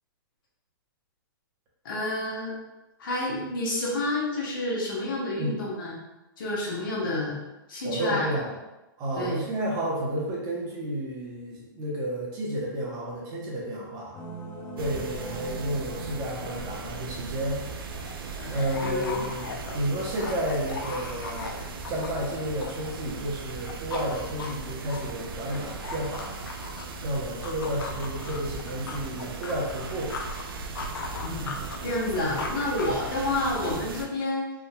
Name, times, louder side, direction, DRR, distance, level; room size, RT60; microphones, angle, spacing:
voice 1, 1.8-2.5 3.0-6.0 6.4-7.4 7.7-8.3 9.2-9.4 18.4-18.6 18.8-19.2 31.2-31.6 31.8-34.5, left 1 dB, 70° left, -4 dB, 1.2 m, -29 dB
voice 2, 7.8-8.5 9.0-14.2 14.8-17.6 18.5-26.4 27.0-30.2, right 1 dB, 30° right, -4 dB, 0.9 m, -31 dB
sound 1, 14.1-18.1, right 2 dB, 25° left, 0.5 m, -41 dB
sound 2, 14.8-34.1, right 4 dB, 80° right, 0.4 m, -38 dB
sound 3, 17.7-23.2 23.5-27.0 27.4-30.4 30.8-33.5, left 4 dB, 85° left, 0.5 m, -38 dB
3.5 x 2.6 x 2.2 m, 0.99 s
hypercardioid pair, 140°, 12 cm